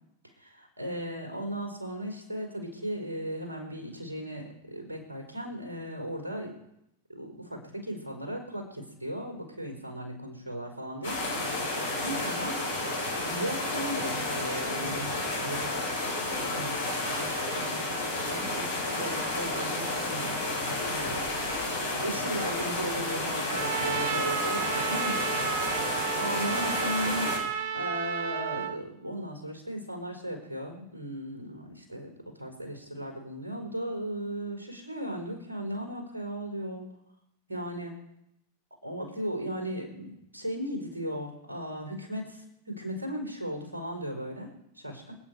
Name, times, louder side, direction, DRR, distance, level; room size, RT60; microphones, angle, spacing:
voice 1, 0.4-6.5 7.1-11.4 12.0-12.7 13.1-15.8 16.5-21.6 22.0-25.3 26.2-27.4 27.7-32.1 32.4-36.9 37.5-37.9 38.8-45.1, equal, 80° right, 3 dB, 4.5 m, -37 dB
sound 1, 11.0-27.4, left 2 dB, 65° left, 5.8 m, -31 dB
Trumpet, 23.5-28.8, right 8 dB, 50° right, 1.0 m, -32 dB
28.0 x 9.4 x 4.7 m, 0.82 s
figure-of-eight pair, 90°, 0 cm